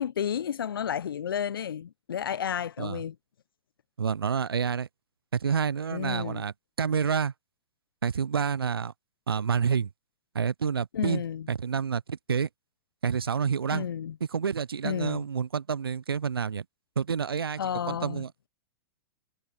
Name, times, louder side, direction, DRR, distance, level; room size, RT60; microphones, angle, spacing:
voice 1, 0.0-3.1 5.9-6.4 10.9-11.5 13.7-14.2 14.8-15.3 17.6-18.2, left 8 dB, 70° left, 0.9 m, -31 dB
voice 2, 4.0-4.9 5.3-7.3 8.0-8.9 9.3-9.9 10.3-11.2 11.5-12.5 13.0-13.9 14.3-16.6 17.0-17.6 17.9-18.3, right 6 dB, 80° right, 0.7 m, -28 dB
figure-of-eight pair, 110°, 12 cm